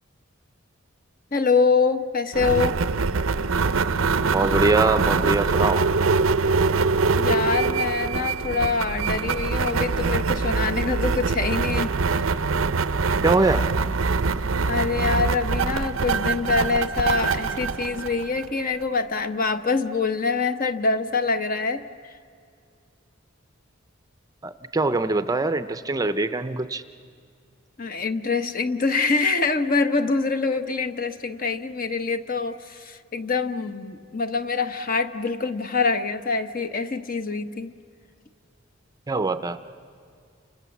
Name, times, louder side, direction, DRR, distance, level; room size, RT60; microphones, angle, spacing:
voice 1, 1.3-2.8 7.1-11.9 14.7-21.8 27.8-37.7, left 4 dB, 45° left, 8 dB, 1.0 m, -25 dB
sound 1, 2.3-18.8, right 4 dB, 90° right, 0.7 m, -24 dB
voice 2, 4.3-5.9 13.2-13.7 24.4-26.8 39.1-39.6, right 3 dB, 20° right, 11 dB, 0.6 m, -23 dB
30.0 x 27.5 x 7.2 m, 2.3 s
head